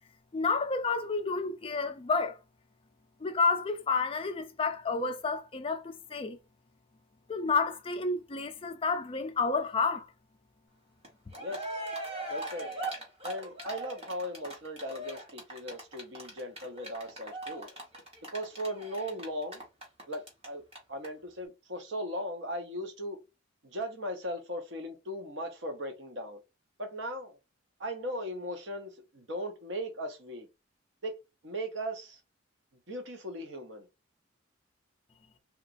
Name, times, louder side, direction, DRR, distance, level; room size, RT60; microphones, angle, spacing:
voice 1, 0.3-2.4 3.2-6.4 7.3-10.1, left 4 dB, 30° left, 0.4 m, -30 dB
Cheering, 11.0-11.1 11.3-20.5 20.7-20.8 21.0-21.1, right 1 dB, 30° right, 1.1 m, -40 dB
voice 2, 11.4-11.8 12.3-12.7 13.2-17.7 18.3-19.6 20.1-20.6 20.9-23.2 23.6-26.4 26.8-27.4 27.8-30.5 31.0-32.2 32.9-33.9, equal, 65° right, 0.8 m, -38 dB
2.9 x 2.4 x 2.5 m
head